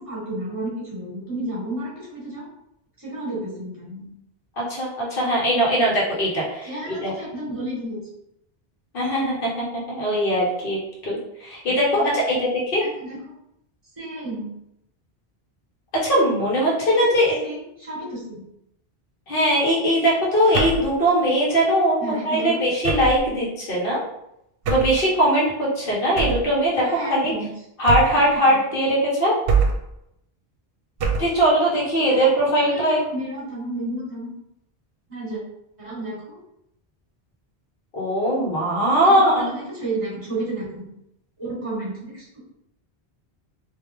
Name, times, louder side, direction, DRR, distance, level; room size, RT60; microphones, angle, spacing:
voice 1, 0.0-2.5 3.0-4.1 6.6-8.0 11.7-12.1 12.8-13.2 14.0-14.5 16.6-17.1 17.4-18.4 22.0-22.5 26.7-27.5 28.2-28.6 32.1-32.3 32.6-34.3 35.1-35.4 35.8-36.4 39.0-40.9 41.4-42.4, right 1 dB, 30° right, -6 dB, 1.6 m, -32 dB
voice 2, 4.6-7.1 8.9-12.8 15.9-17.4 19.3-22.0 22.2-24.0 24.7-26.8 27.1-27.3 27.8-29.4 31.2-33.0 37.9-39.5, equal, 65° left, -4 dB, 1.3 m, -20 dB
sound 1, 20.5-20.9 22.8-23.3 24.6-25.0 26.2-26.5 27.9-28.3 29.5-29.9 31.0-31.4, right 5 dB, 70° right, 0.8 m, -23 dB
3.3 x 2.8 x 3.4 m, 0.80 s
omnidirectional pair, 1.0 m